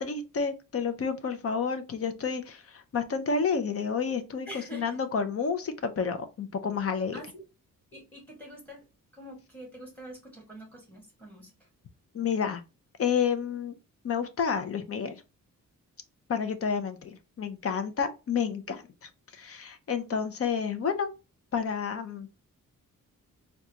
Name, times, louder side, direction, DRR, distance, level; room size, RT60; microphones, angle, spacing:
voice 1, 0.0-7.2 12.1-12.6 13.0-13.8 14.0-15.2 16.3-17.1 17.4-21.1 21.5-22.4, left 6 dB, 45° left, 0.6 m, -30 dB
voice 2, 4.5-5.0 7.1-7.3 7.9-8.8 9.1-11.5, right 1 dB, 5° left, 1.6 m, -45 dB
3.7 x 2.3 x 2.8 m
wide cardioid pair, 170°, 33 cm